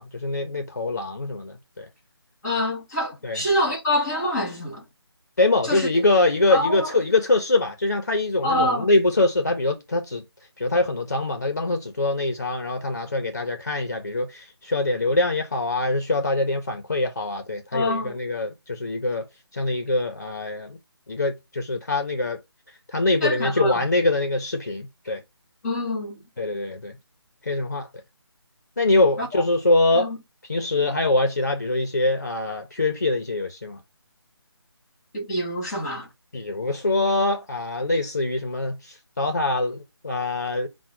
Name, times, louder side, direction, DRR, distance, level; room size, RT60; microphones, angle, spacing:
voice 1, 0.0-1.9 3.2-3.4 5.4-10.2 10.6-19.2 19.5-20.8 21.1-22.4 22.9-25.2 26.4-26.9 27.4-27.9 28.8-30.1 30.5-33.8 36.3-40.7, left 2 dB, 40° left, 0.5 m, -24 dB
voice 2, 2.4-4.8 5.6-6.0 6.5-6.9 8.4-8.9 17.7-18.2 23.2-23.9 25.6-26.2 29.2-29.3 29.9-30.2 35.1-36.1, left 1 dB, 10° left, 1.6 m, -26 dB
4.8 x 2.0 x 4.4 m
figure-of-eight pair, 180°, 14 cm